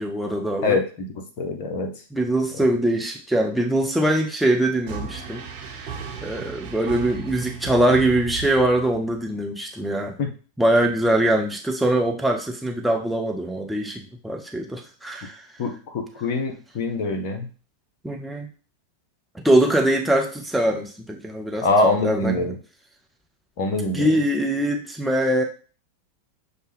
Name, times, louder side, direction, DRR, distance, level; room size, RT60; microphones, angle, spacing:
voice 1, 0.0-0.8 2.1-5.4 6.2-10.1 10.6-15.5 18.0-18.5 19.4-21.7 22.0-22.6 23.9-25.4, right 1 dB, 5° right, 0 dB, 0.6 m, -22 dB
voice 2, 0.6-1.9 10.2-10.3 15.6-17.5 21.6-22.5 23.6-24.1, left 2 dB, 45° left, 4 dB, 0.9 m, -24 dB
sound 1, 4.9-9.2, right 6 dB, 50° right, 1.1 m, -35 dB
6.6 x 2.2 x 3.4 m, 0.38 s
figure-of-eight pair, 90°, 0 cm